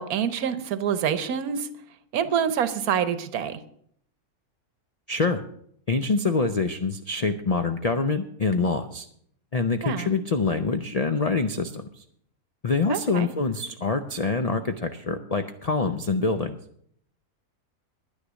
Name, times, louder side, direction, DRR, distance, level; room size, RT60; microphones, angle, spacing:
voice 1, 0.0-1.7 2.1-3.6 9.8-10.1 12.9-13.3, right 8 dB, 85° right, 12 dB, 1.3 m, -26 dB
voice 2, 5.1-5.4 5.9-9.1 9.5-12.0 12.6-16.6, left 4 dB, 65° left, 8 dB, 0.3 m, -25 dB
10.0 x 9.8 x 6.2 m, 0.66 s
omnidirectional pair, 1.5 m